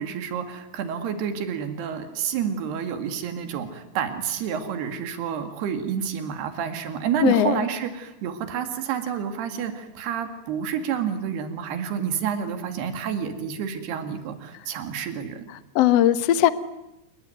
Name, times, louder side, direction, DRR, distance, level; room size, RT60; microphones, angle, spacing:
voice 1, 0.0-15.5, right 8 dB, 85° right, 8 dB, 4.2 m, -29 dB
voice 2, 7.2-7.7 15.7-16.5, left 12 dB, 70° left, 13 dB, 1.5 m, -19 dB
27.5 x 21.5 x 9.3 m, 0.91 s
omnidirectional pair, 4.5 m